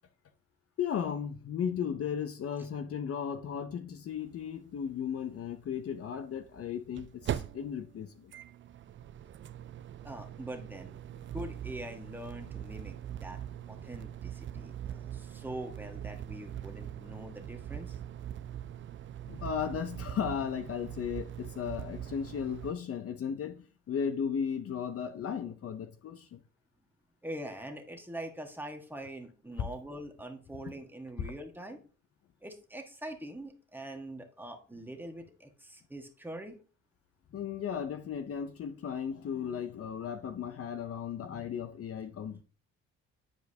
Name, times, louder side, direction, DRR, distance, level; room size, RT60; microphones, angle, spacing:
voice 1, 0.8-8.3 14.6-14.7 19.3-26.4 29.6-29.7 31.2-31.3 37.3-42.4, left 7 dB, 50° left, 0.6 m, -35 dB
sound 1, 4.1-4.2 4.4-4.5 6.4-22.7, right 10 dB, 40° right, 0.4 m, -42 dB
voice 2, 10.0-11.0 11.3-13.4 13.7-18.0 27.2-31.8 32.4-36.5, right 1 dB, 5° right, 1.4 m, -43 dB
9.8 x 4.6 x 2.8 m
cardioid pair, 90°, 30 cm